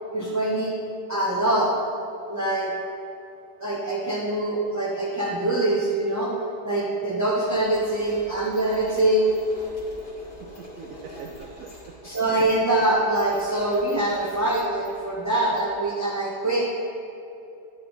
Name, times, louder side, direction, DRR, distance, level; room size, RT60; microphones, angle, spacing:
voice 1, 0.1-0.7 1.1-1.7 2.3-2.7 3.6-6.3 6.6-9.3 12.0-16.6, right 1 dB, 15° right, -6 dB, 0.6 m, -24 dB
sound 1, 7.4-15.9, equal, 70° left, 2.3 m, -44 dB
voice 2, 10.4-11.9 16.6-16.7, right 5 dB, 65° right, 1 dB, 0.9 m, -43 dB
11.0 x 5.5 x 3.9 m, 2.7 s
omnidirectional pair, 1.7 m